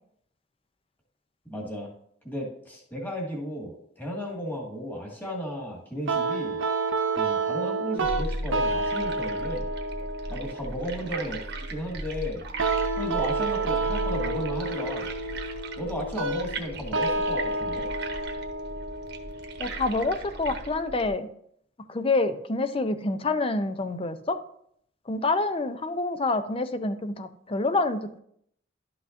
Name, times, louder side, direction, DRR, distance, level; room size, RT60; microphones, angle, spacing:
voice 1, 1.5-1.9 2.2-6.6 7.2-9.7 10.3-11.4 11.7-12.4 12.9-15.1 15.8-17.9, equal, 10° left, -2 dB, 1.9 m, -34 dB
sound 1, 6.1-21.0, right 3 dB, 75° right, 0.7 m, -30 dB
sound 2, 8.0-21.1, right 2 dB, 60° right, 1.1 m, -37 dB
voice 2, 19.6-21.3 21.9-24.4 25.1-28.2, left 3 dB, 30° left, 10 dB, 0.5 m, -27 dB
11.5 x 5.8 x 2.6 m, 0.67 s
head